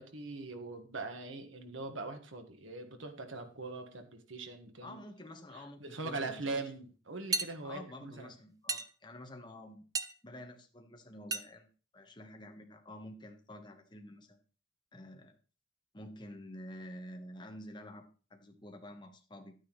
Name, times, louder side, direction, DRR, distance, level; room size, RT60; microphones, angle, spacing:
voice 1, 0.0-5.0 5.5-8.3, right 3 dB, 80° right, 6 dB, 1.5 m, -42 dB
voice 2, 4.8-6.4 7.6-9.8 10.2-11.7 11.9-14.4 14.9-15.4 15.9-18.0 18.3-19.5, left 1 dB, 25° left, 4 dB, 1.2 m, -49 dB
sound 1, 7.3-7.5 8.7-8.9 10.0-10.1 11.3-11.5, right 4 dB, 20° right, 0.4 m, -33 dB
11.0 x 9.3 x 3.1 m, 0.37 s
head